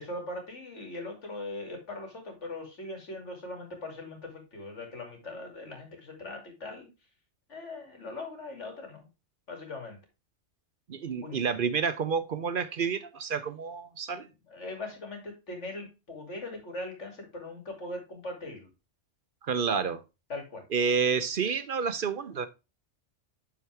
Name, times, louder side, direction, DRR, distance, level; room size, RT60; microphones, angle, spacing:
voice 1, 0.0-6.9 7.5-9.1 9.5-10.0 11.2-11.4 14.5-18.7 20.3-20.6 21.4-21.5, left 2 dB, 75° left, 2.9 m, -40 dB
voice 2, 10.9-14.3 19.4-20.0 20.7-22.5, right 6 dB, 55° right, 0.7 m, -29 dB
10.0 x 4.8 x 3.3 m
omnidirectional pair, 1.2 m